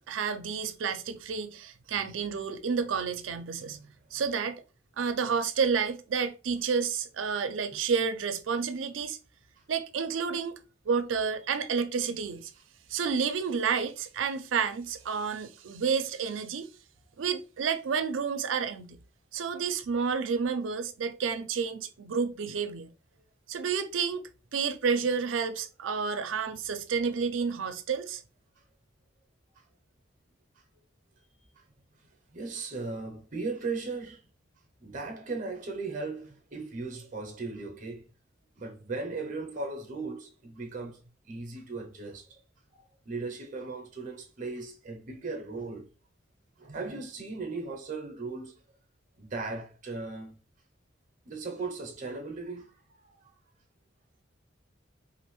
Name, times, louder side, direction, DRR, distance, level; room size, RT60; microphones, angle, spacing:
voice 1, 0.1-3.8 4.1-4.6 5.0-9.2 9.7-10.5 10.9-12.5 12.9-16.7 17.2-19.0 19.3-22.9 23.5-24.2 24.5-28.2, right 6 dB, 85° right, 0.4 m, -30 dB
voice 2, 3.6-3.9 7.7-7.8 29.6-29.7 31.6-31.7 32.3-34.2 34.8-38.1 38.6-41.0 41.3-42.4 42.7-45.9 46.6-48.6 49.2-50.4 51.2-53.3, right 3 dB, 40° right, 0.6 m, -37 dB
3.0 x 2.5 x 3.0 m
head